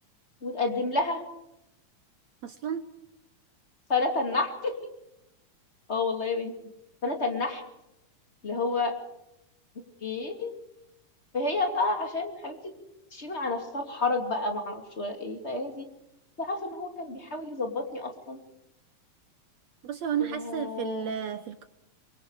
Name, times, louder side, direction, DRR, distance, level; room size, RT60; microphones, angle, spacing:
voice 1, 0.4-1.2 3.9-4.7 5.9-6.5 7.0-7.6 8.4-9.0 10.0-10.5 11.3-12.7 13.1-15.9 16.4-18.4 20.3-21.1, left 3 dB, 20° left, 4 dB, 2.5 m, -30 dB
voice 2, 2.4-2.9 19.8-21.7, right 9 dB, 65° right, 9 dB, 1.9 m, -32 dB
26.0 x 23.5 x 4.9 m, 0.85 s
omnidirectional pair, 3.8 m